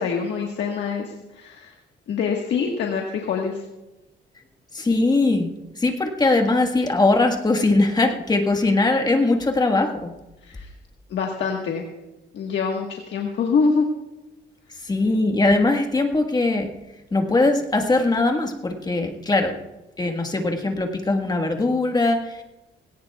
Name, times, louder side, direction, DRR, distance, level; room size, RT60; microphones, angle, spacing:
voice 1, 0.0-1.7 2.1-3.6 10.4-10.7 11.1-11.8 12.3-13.9, left 5 dB, 70° left, 1 dB, 1.5 m, -25 dB
voice 2, 4.7-5.5 5.8-10.1 14.8-16.7 17.1-19.6 20.0-22.4, left 2 dB, 20° left, 4 dB, 1.5 m, -21 dB
19.0 x 17.5 x 2.4 m, 1.0 s
cardioid pair, 115°, 19 cm